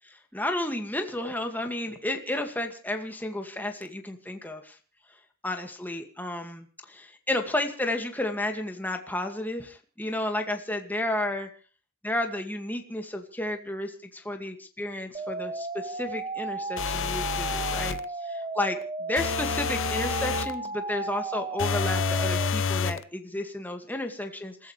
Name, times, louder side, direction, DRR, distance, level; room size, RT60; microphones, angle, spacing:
voice 1, 0.0-4.8 5.4-9.7 10.0-11.5 12.0-24.7, left 1 dB, 10° left, 4 dB, 2.2 m, -32 dB
sound 1, 15.1-22.5, right 3 dB, 25° right, 1.2 m, -34 dB
sound 2, 16.8-18.1 19.2-20.6 21.6-23.0, left 5 dB, 55° left, 0.8 m, -28 dB
29.0 x 14.5 x 3.4 m, 0.38 s
head